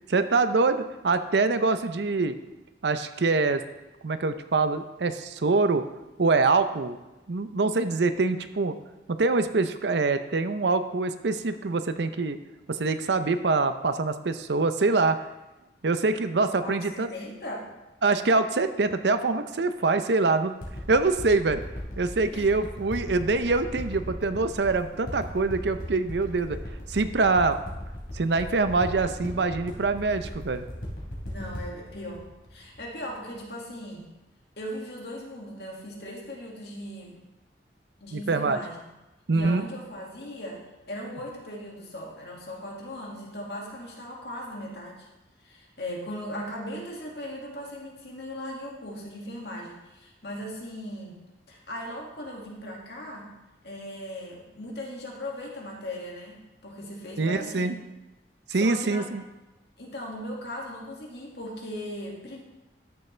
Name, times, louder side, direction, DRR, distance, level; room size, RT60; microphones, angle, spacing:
voice 1, 0.1-2.4 2.8-3.6 4.0-5.9 6.2-7.0 7.3-8.8 9.1-12.4 12.7-15.2 15.8-17.1 18.0-20.5 20.9-21.6 22.0-26.6 26.9-27.6 28.1-30.6 38.1-38.6 39.3-39.7 57.2-57.7 58.5-59.2, right 3 dB, 80° right, 10 dB, 0.6 m, -24 dB
voice 2, 16.6-17.7 22.3-22.5 31.3-32.2 32.5-34.1 34.6-37.3 38.0-38.8 39.3-45.1 45.4-51.2 51.5-53.3 53.6-57.7 58.5-59.1 59.8-62.4, equal, 70° left, -2 dB, 2.1 m, -38 dB
sound 1, 20.6-33.4 34.0-34.1, equal, 55° left, 3.1 m, -37 dB
13.0 x 6.9 x 3.3 m, 1.0 s
head